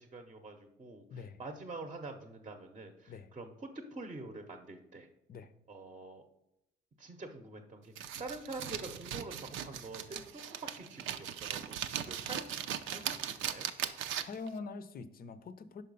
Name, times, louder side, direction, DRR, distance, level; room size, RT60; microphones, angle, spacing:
voice 1, 0.0-5.1 5.7-6.2 7.0-13.7, right 2 dB, 30° right, 5 dB, 0.8 m, -46 dB
sound 1, 8.0-14.5, right 9 dB, 85° right, 0.5 m, -39 dB
voice 2, 14.3-15.8, left 4 dB, 50° left, 13 dB, 0.6 m, -44 dB
5.6 x 4.8 x 5.3 m, 0.84 s
cardioid pair, 90°, 20 cm